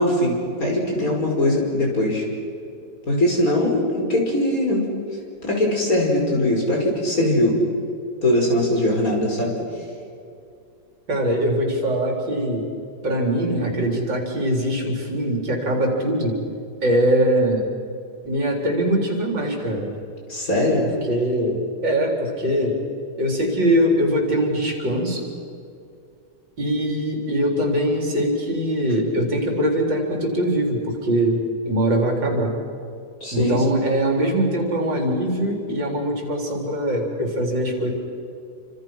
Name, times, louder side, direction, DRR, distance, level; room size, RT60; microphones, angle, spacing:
voice 1, 0.0-2.2 3.1-4.9 5.4-7.6 8.2-9.5 20.3-20.9 33.2-33.6, left 1 dB, 50° left, -1 dB, 5.9 m, -21 dB
voice 2, 11.1-12.7 13.0-16.4 16.8-17.7 18.2-19.9 21.1-22.8 23.2-25.3 26.6-32.5 33.3-37.9, right 1 dB, 90° right, 1 dB, 4.9 m, -22 dB
29.5 x 26.0 x 6.1 m, 2.5 s
omnidirectional pair, 1.9 m